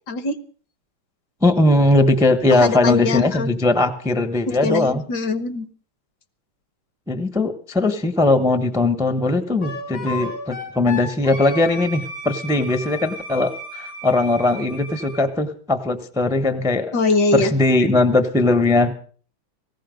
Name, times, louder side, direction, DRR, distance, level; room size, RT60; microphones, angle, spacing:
voice 1, 0.1-0.4 2.5-3.5 4.5-5.7 16.9-17.5, left 3 dB, 60° left, 10 dB, 1.6 m, -22 dB
voice 2, 1.4-5.0 7.1-16.9 17.3-19.0, left 2 dB, 5° right, 9 dB, 0.7 m, -19 dB
Wind instrument woodwind instrument, 9.6-15.3, left 1 dB, 85° left, 6.7 m, -34 dB
18.0 x 15.0 x 5.2 m, 0.43 s
omnidirectional pair, 2.1 m